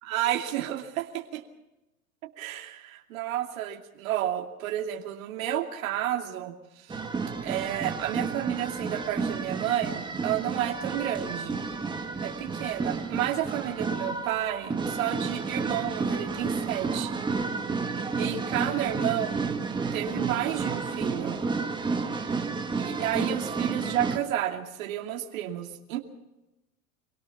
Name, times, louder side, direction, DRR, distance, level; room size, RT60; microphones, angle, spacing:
voice 1, 0.0-1.4 2.2-7.0 7.4-11.6 12.2-17.2 18.1-19.5 19.9-21.4 22.3-22.4 22.8-26.0, right 12 dB, 65° right, 3 dB, 2.7 m, -31 dB
sound 1, 6.9-24.2, right 4 dB, 10° right, 1.7 m, -31 dB
25.0 x 18.0 x 5.9 m, 0.98 s
supercardioid pair, 135°, 43 cm